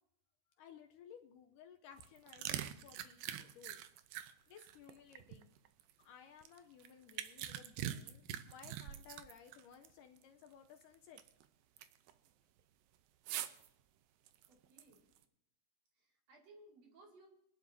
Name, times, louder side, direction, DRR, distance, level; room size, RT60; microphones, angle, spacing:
voice 1, 0.6-3.8 4.2-5.5 6.0-11.2, left 8 dB, 75° left, 4 dB, 2.1 m, -58 dB
sound 1, 1.9-5.9 6.4-9.9 10.2-10.3 10.8-11.4 11.8-12.1 13.3-13.7 14.3-15.2, right 11 dB, 80° right, 2.4 m, -44 dB
voice 2, 14.5-15.0 16.0-17.3, right 2 dB, 50° right, -1 dB, 3.3 m, -62 dB
24.0 x 11.0 x 2.7 m, 0.80 s
omnidirectional pair, 4.2 m